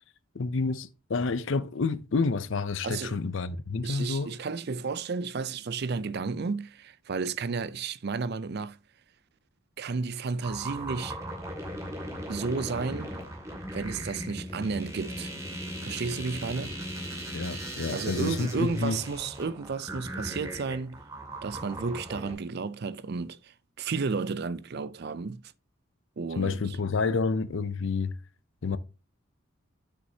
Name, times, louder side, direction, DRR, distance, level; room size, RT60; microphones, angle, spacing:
voice 1, 0.3-4.4 17.3-19.0 26.4-28.2 28.6-28.8, left 4 dB, 60° left, 0.5 m, -29 dB
voice 2, 2.8-3.2 3.8-8.8 9.8-11.2 12.3-13.1 13.7-15.3 15.8-16.8 17.9-21.0 21.4-25.5 26.2-26.6, right 4 dB, 45° right, 0.4 m, -32 dB
sound 1, 10.4-22.3, right 1 dB, 15° right, 2.2 m, -38 dB
8.1 x 6.3 x 2.8 m
head